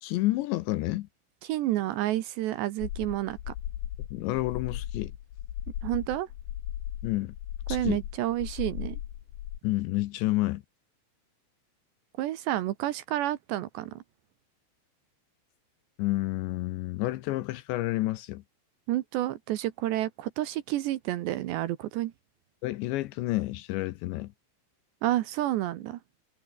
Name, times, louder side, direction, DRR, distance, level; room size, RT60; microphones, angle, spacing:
voice 1, 0.0-1.1 4.1-5.1 7.0-7.3 7.7-8.0 9.6-10.6 16.0-18.4 22.6-24.3, left 18 dB, 75° left, 2.8 m, -29 dB
voice 2, 1.4-3.5 5.8-6.3 7.7-9.0 12.2-14.0 18.9-22.1 25.0-26.0, right 14 dB, 70° right, 3.0 m, -30 dB
sound 1, 2.8-9.6, left 11 dB, 60° left, 2.9 m, -37 dB
omnidirectional pair, 5.7 m